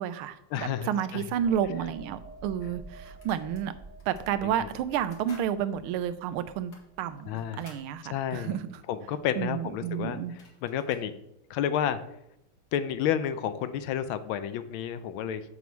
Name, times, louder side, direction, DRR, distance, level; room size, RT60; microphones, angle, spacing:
voice 1, 0.0-3.7 4.1-6.7 7.0-8.7 9.4-10.3, right 9 dB, 90° right, 13 dB, 1.5 m, -31 dB
voice 2, 0.5-1.2 4.4-4.7 7.3-7.6 8.0-8.6 8.9-11.1 11.5-12.0 12.7-15.4, left 9 dB, 80° left, 12 dB, 1.4 m, -31 dB
sound 1, 1.3-8.8 9.1-9.3, right 3 dB, 45° right, 0.6 m, -50 dB
sound 2, 2.6-3.6 4.0-4.2 4.8-5.5 5.9-6.0 6.5-7.9 9.9-10.0 10.2-11.1, left 2 dB, 50° left, 2.1 m, -55 dB
7.1 x 6.2 x 4.5 m, 0.79 s
omnidirectional pair, 2.3 m